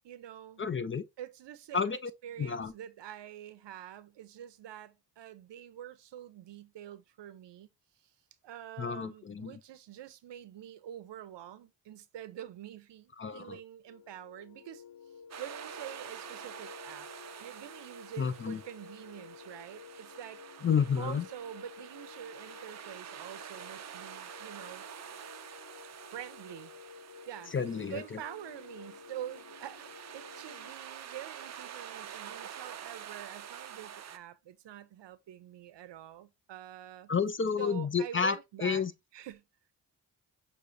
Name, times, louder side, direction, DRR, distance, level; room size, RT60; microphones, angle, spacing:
voice 1, 0.0-0.6 1.2-7.7 8.4-14.8 15.4-17.1 17.4-20.4 21.0-24.8 26.1-26.7 27.3-27.5 27.9-29.9 30.1-37.1 37.6-38.8 39.1-39.4, right 11 dB, 75° right, 0.7 m, -46 dB
voice 2, 0.6-1.0 1.7-2.1 2.4-2.7 8.8-9.5 13.2-13.6 18.2-18.6 20.6-21.3 27.5-28.2 37.1-38.9, left 6 dB, 30° left, 0.4 m, -31 dB
sound 1, 13.9-30.7, left 7 dB, 55° left, 0.8 m, -53 dB
sound 2, 15.3-34.2, right 9 dB, 40° right, 0.5 m, -47 dB
6.2 x 2.7 x 2.6 m
cardioid pair, 70°, 43 cm